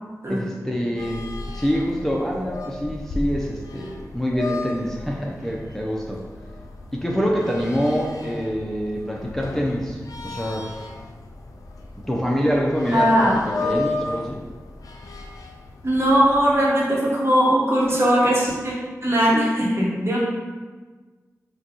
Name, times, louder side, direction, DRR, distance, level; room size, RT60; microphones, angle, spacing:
voice 1, 0.3-1.2 1.5-6.2 6.9-10.7 12.1-14.4, equal, 5° left, -3 dB, 0.5 m, -25 dB
sound 1, 1.0-16.6, left 3 dB, 80° left, 0.4 m, -35 dB
voice 2, 12.9-13.4 15.8-18.7 19.0-20.2, equal, 45° right, -5 dB, 1.0 m, -19 dB
5.1 x 2.2 x 2.8 m, 1.4 s
wide cardioid pair, 75°, 6 cm